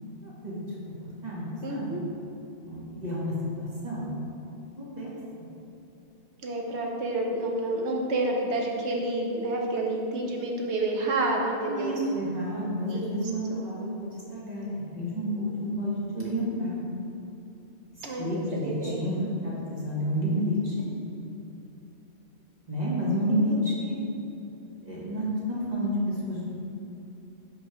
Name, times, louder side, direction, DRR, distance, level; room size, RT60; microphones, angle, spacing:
voice 1, 0.2-0.6 1.2-2.0 2.7-4.1 4.8-5.1 11.6-16.7 18.2-20.8 22.7-24.0 24.9-26.5, equal, 35° right, -7 dB, 1.7 m, -30 dB
voice 2, 1.6-2.0 6.4-12.0 12.9-13.2 13.5-13.6 18.0-19.1 23.3-23.6, right 2 dB, 75° right, 0 dB, 1.2 m, -29 dB
5.8 x 4.6 x 5.0 m, 2.9 s
omnidirectional pair, 1.2 m